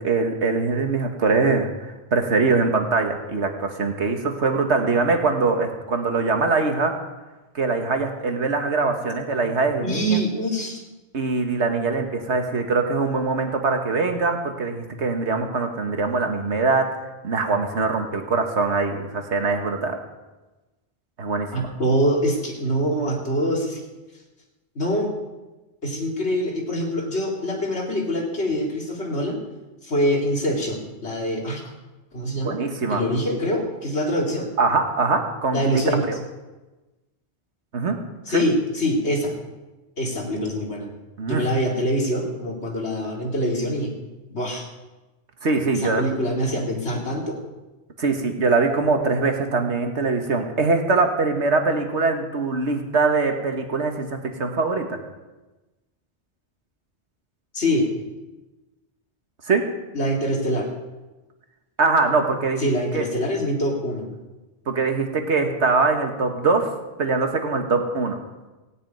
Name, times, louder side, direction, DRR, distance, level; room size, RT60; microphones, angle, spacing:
voice 1, 0.0-1.7 2.1-6.9 7.6-10.2 11.1-16.9 17.2-20.0 21.2-21.5 32.4-33.0 34.6-35.6 36.1-36.2 37.7-38.0 38.3-38.4 41.2-41.4 45.4-46.0 48.0-55.0 59.5-59.6 61.8-63.1 64.7-66.7 67.0-68.2, right 4 dB, 85° right, 4 dB, 1.8 m, -22 dB
voice 2, 9.8-10.8 21.5-23.8 24.7-25.1 25.8-29.4 29.8-31.7 32.1-32.6 32.9-34.5 35.5-36.1 38.3-39.3 40.0-40.9 41.3-43.9 44.3-44.7 45.8-47.4 57.5-58.1 59.9-60.7 62.6-64.1, equal, 75° left, -1 dB, 3.0 m, -24 dB
16.5 x 6.8 x 9.3 m, 1.1 s
omnidirectional pair, 1.1 m